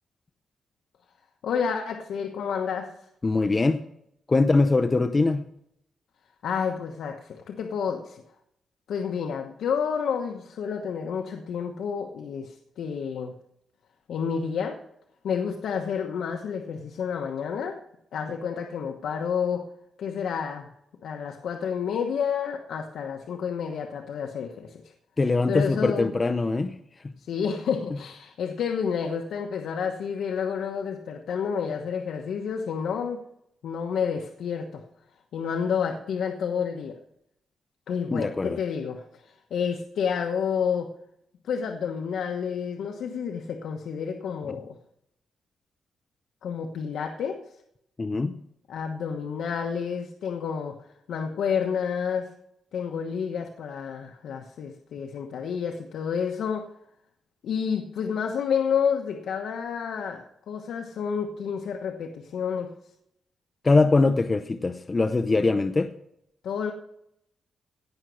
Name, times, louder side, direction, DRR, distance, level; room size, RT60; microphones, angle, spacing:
voice 1, 1.4-2.9 6.4-8.2 8.9-13.3 14.1-14.8 15.2-17.8 18.1-19.6 20.0-20.7 21.0-24.9 25.5-26.1 27.2-33.2 33.6-34.8 35.3-36.9 37.9-40.9 41.4-44.7 46.4-47.4 48.7-52.3 52.7-56.7 57.4-62.7 66.4-66.7, left 7 dB, 75° left, 3 dB, 1.1 m, -30 dB
voice 2, 3.2-3.8 4.3-5.4 25.2-26.7 27.0-27.1 38.1-38.6 48.0-48.4 63.6-65.9, left 3 dB, 25° left, 9 dB, 0.6 m, -22 dB
17.5 x 6.2 x 6.9 m, 0.77 s
cardioid pair, 140°, 0 cm